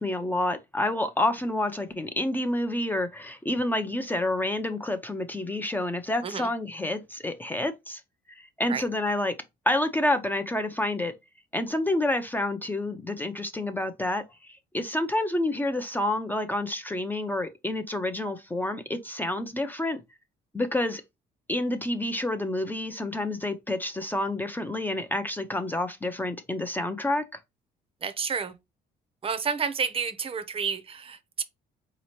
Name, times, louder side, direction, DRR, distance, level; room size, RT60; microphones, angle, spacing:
voice 1, 0.0-8.0 8.3-9.3 9.7-11.1 11.5-20.0 20.5-21.0 21.5-27.4, left 1 dB, 10° left, 0.4 m, -28 dB
voice 2, 28.0-28.5 29.2-31.4, right 6 dB, 35° right, 0.6 m, -30 dB
4.1 x 2.8 x 2.9 m
cardioid pair, 110°, 17 cm